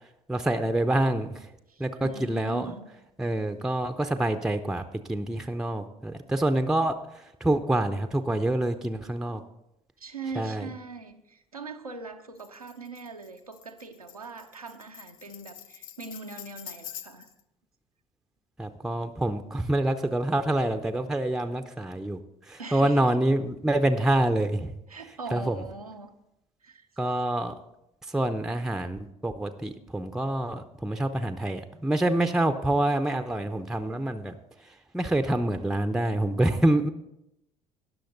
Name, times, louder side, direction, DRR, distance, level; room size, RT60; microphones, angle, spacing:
voice 1, 0.3-1.3 1.8-2.7 3.2-4.8 5.1-6.9 7.4-9.4 10.4-10.7 18.6-22.2 22.5-24.7 25.3-25.6 27.0-27.5 28.1-34.4 34.9-36.9, right 1 dB, 5° right, 9 dB, 0.6 m, -26 dB
voice 2, 1.7-2.9 10.0-17.3 22.6-23.2 24.9-26.1 26.6-26.9, right 3 dB, 85° right, 4 dB, 0.7 m, -41 dB
Tambourine, 12.4-17.4, left 10 dB, 70° left, 0.5 m, -46 dB
19.0 x 6.4 x 3.9 m, 0.85 s
figure-of-eight pair, 55°, 18 cm